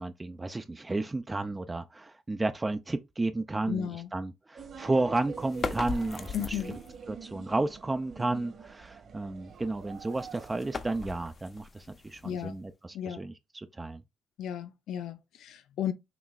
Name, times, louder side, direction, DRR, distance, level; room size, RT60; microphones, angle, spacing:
voice 1, 0.0-6.6 7.1-14.0, right 2 dB, 20° right, 0.4 m, -32 dB
voice 2, 3.7-4.1 6.3-6.8 12.2-12.6 12.9-13.2 14.4-15.9, left 9 dB, 80° left, 0.6 m, -34 dB
sound 1, 4.6-11.3, right 6 dB, 60° right, 1.7 m, -46 dB
sound 2, 5.4-7.0 9.7-12.7, left 4 dB, 40° left, 0.7 m, -39 dB
5.9 x 3.1 x 2.4 m
cardioid pair, 90°, 0 cm